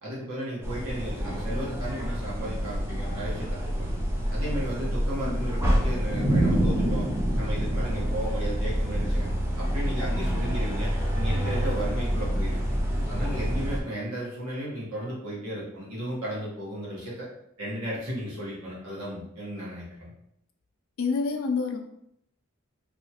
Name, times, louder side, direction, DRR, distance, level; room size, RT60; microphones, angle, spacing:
voice 1, 0.0-3.9 4.3-7.1 7.4-9.3 9.6-12.7 13.1-17.3 17.6-20.1, equal, 85° right, -7 dB, 1.2 m, -35 dB
sound 1, 0.6-13.8, equal, 10° right, 0.3 m, -27 dB
voice 2, 21.0-21.8, left 4 dB, 65° left, 4 dB, 0.4 m, -28 dB
2.7 x 2.3 x 2.8 m, 0.76 s
head